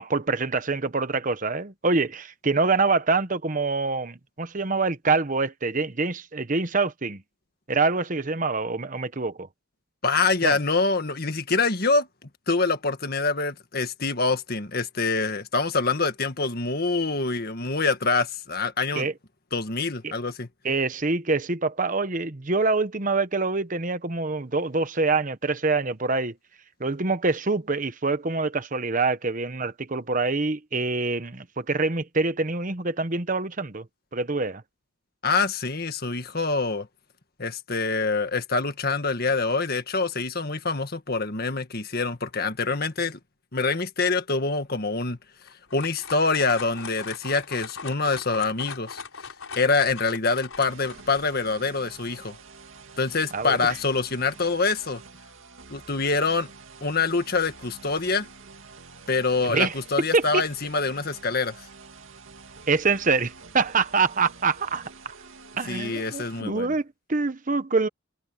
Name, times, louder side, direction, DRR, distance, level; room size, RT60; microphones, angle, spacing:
voice 1, 0.0-7.2 7.7-9.5 10.4-10.6 18.9-19.1 20.0-20.1 20.6-26.3 26.8-33.9 34.1-34.6 53.3-53.6 59.5-59.7 60.1-60.4 62.7-64.9 65.6-67.9, right 3 dB, 40° right, 1.0 m, -25 dB
voice 2, 10.0-12.1 12.5-19.1 19.5-20.5 35.2-36.9 37.4-43.2 43.5-45.2 45.7-49.0 49.6-52.4 53.0-55.0 55.7-56.5 56.8-58.3 59.1-61.7 65.7-66.7, left 4 dB, 50° left, 1.7 m, -25 dB
sound 1, 45.4-51.2, left 5 dB, 90° left, 4.8 m, -40 dB
sound 2, 50.6-66.4, right 4 dB, 75° right, 2.3 m, -47 dB
head